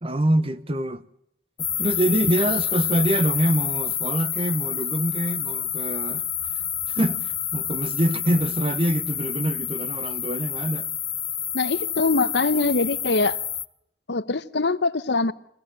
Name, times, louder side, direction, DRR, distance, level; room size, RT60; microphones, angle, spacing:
voice 1, 0.0-1.0 1.8-6.2 6.9-10.9, right 1 dB, 30° right, 0.9 m, -25 dB
sound 1, 1.6-13.7, left 9 dB, 20° left, 0.7 m, -28 dB
voice 2, 11.5-13.4 14.1-15.3, left 3 dB, 75° left, 0.9 m, -23 dB
24.0 x 16.0 x 7.5 m
head